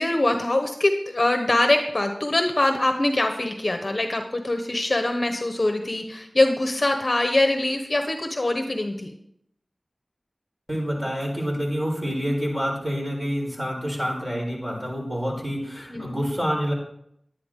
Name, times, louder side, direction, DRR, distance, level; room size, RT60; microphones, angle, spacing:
voice 1, 0.0-9.2 15.9-16.2, left 2 dB, 45° left, 5 dB, 1.1 m, -23 dB
voice 2, 10.7-16.7, equal, 15° right, -2 dB, 4.4 m, -27 dB
11.0 x 9.8 x 3.7 m, 0.74 s
wide cardioid pair, 65°, 0 cm